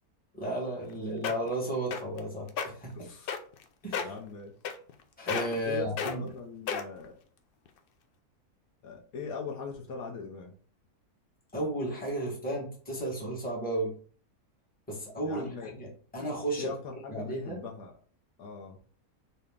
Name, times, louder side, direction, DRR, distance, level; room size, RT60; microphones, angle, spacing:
voice 1, 0.3-3.1 3.8-4.1 5.2-6.2 11.5-13.9 14.9-16.7 17.1-17.6, right 1 dB, 5° left, -3 dB, 1.2 m, -34 dB
sound 1, 0.8-0.9 1.2-1.5 1.9-2.2 2.5-2.7 3.3-3.6 3.9-4.2 4.6-5.0 5.3-5.6 6.0-6.1 6.7-7.0 7.7-7.8, left 6 dB, 90° left, 0.5 m, -32 dB
voice 2, 2.9-3.4 4.0-4.5 5.6-7.2 8.8-10.6 15.2-15.7 16.6-18.0 18.4-18.8, left 4 dB, 70° left, 2 dB, 1.1 m, -40 dB
4.1 x 2.8 x 3.5 m, 0.43 s
omnidirectional pair, 1.6 m